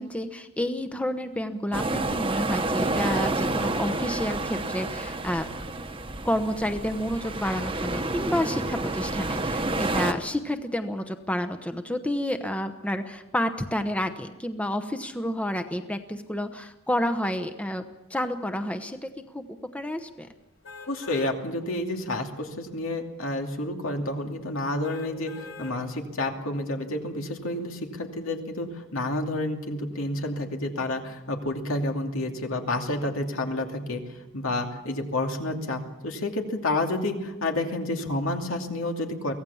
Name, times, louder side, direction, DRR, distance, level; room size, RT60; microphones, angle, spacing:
voice 1, 0.0-5.5 6.2-17.8 18.1-19.4 19.7-20.3, left 1 dB, 5° left, 7 dB, 0.9 m, -29 dB
sound 1, 1.7-10.1, right 2 dB, 25° right, 1.2 m, -29 dB
sound 2, 20.6-21.4 21.9-22.0 24.8-25.8 26.3-26.4, left 4 dB, 60° left, 3.7 m, -43 dB
voice 2, 20.9-39.3, left 2 dB, 80° left, 3 dB, 2.6 m, -30 dB
24.0 x 17.0 x 7.2 m, 1.0 s
head